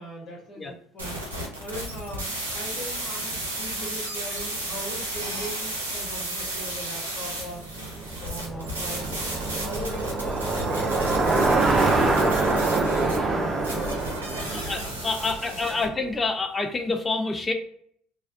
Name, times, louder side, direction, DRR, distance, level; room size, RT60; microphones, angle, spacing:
voice 1, 0.0-7.7 8.0-9.1 9.5-13.0 13.3-14.8 15.2-15.9, equal, 50° left, -3 dB, 1.1 m, -40 dB
sound 1, 1.0-15.8, right 1 dB, 90° right, 0.6 m, -34 dB
Bicycle, 7.5-15.8, right 3 dB, 30° right, 0.5 m, -25 dB
voice 2, 14.5-17.5, left 3 dB, 20° left, 5 dB, 0.4 m, -27 dB
2.3 x 2.2 x 2.4 m, 0.65 s
hypercardioid pair, 65°, 0 cm